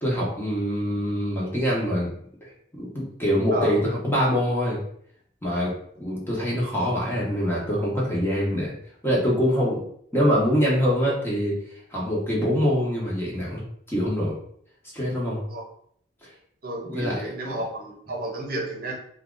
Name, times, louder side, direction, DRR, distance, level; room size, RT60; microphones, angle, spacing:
voice 1, 0.0-2.1 2.7-4.8 5.4-8.7 9.0-9.9 10.1-11.6 11.9-14.4 14.9-15.4 16.8-17.2, equal, 10° left, -5 dB, 0.9 m, -24 dB
voice 2, 16.6-18.9, right 1 dB, 50° right, 0 dB, 0.8 m, -31 dB
2.8 x 2.4 x 3.7 m, 0.65 s
head